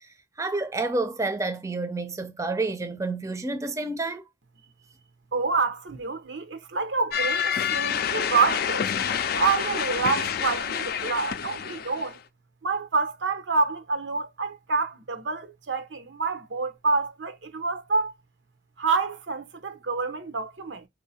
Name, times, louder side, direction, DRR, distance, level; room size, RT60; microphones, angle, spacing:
voice 1, 0.4-4.2, right 3 dB, 15° right, 0.5 m, -29 dB
voice 2, 5.3-8.9 9.3-12.2 12.6-18.1 18.8-20.9, right 4 dB, 90° right, 0.8 m, -27 dB
sound 1, 7.1-12.2, left 8 dB, 55° left, 0.4 m, -28 dB
4.4 x 2.7 x 4.1 m
head